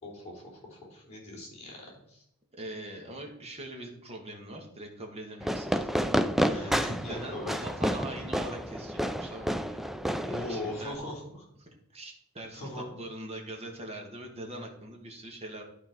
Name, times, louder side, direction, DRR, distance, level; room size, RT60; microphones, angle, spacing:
voice 1, 0.0-2.2 6.5-7.6 10.2-11.5 12.5-12.9, left 1 dB, 30° left, -5 dB, 3.9 m, -39 dB
voice 2, 2.5-6.1 6.5-6.7 7.1-9.8 10.1-11.0 11.6-15.6, right 1 dB, 30° right, 1 dB, 1.7 m, -43 dB
Fireworks, 5.4-11.0, equal, ahead, 0.3 m, -30 dB
11.5 x 4.7 x 4.6 m, 0.73 s
head